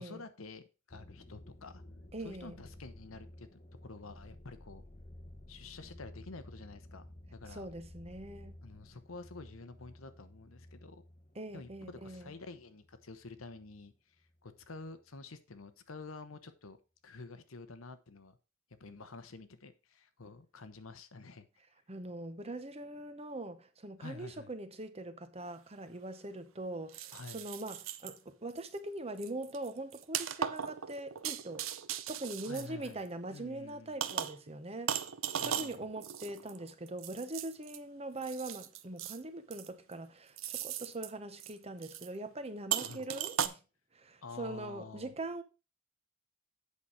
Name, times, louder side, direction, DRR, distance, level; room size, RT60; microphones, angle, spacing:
voice 1, 0.0-1.8 2.2-3.5 3.8-4.8 5.5-7.7 8.6-11.0 11.5-13.9 14.4-16.8 17.0-18.4 18.8-21.5 24.0-24.5 27.1-27.4 32.5-33.0 33.3-34.0 35.4-35.7 42.8-43.1 44.2-45.1, left 3 dB, 90° left, 1.0 m, -49 dB
sound 1, 0.9-13.9 14.2-14.8, left 1 dB, 30° left, 0.9 m, -54 dB
voice 2, 2.1-2.6 7.5-8.6 11.3-12.3 21.9-31.7 32.1-35.1 35.4-43.6 43.9-45.4, right 2 dB, 30° right, 0.9 m, -42 dB
sound 2, 25.4-25.5 26.9-28.2 28.6-28.8 29.2-33.3 34.0-34.5 34.9-37.8 38.2-39.2 39.5-39.9 40.4-41.1 41.4-41.5 41.8-42.1 42.7-43.5, right 9 dB, 75° right, 0.6 m, -38 dB
8.4 x 5.8 x 4.8 m
head